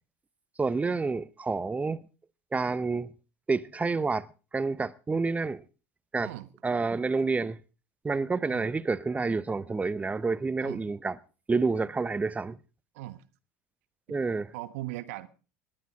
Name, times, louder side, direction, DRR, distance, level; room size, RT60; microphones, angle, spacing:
voice 1, 0.6-2.0 2.5-3.1 3.5-4.3 4.5-5.6 6.1-6.3 6.6-7.6 8.0-11.2 11.5-12.6 14.1-14.5, right 4 dB, 15° right, 0.9 m, -28 dB
voice 2, 14.5-15.3, right 17 dB, 65° right, 1.2 m, -39 dB
20.0 x 11.0 x 5.0 m
figure-of-eight pair, 70°, 8 cm